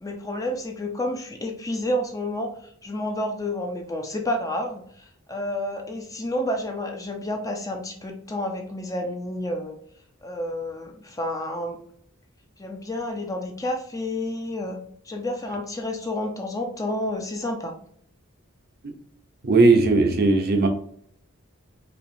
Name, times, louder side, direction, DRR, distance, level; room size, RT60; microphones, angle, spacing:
voice 1, 0.0-9.8 10.2-11.8 12.6-14.8 15.0-17.7, left 1 dB, 15° left, 0.5 m, -30 dB
voice 2, 19.4-20.7, right 3 dB, 45° right, 0.6 m, -18 dB
4.5 x 2.9 x 2.6 m
head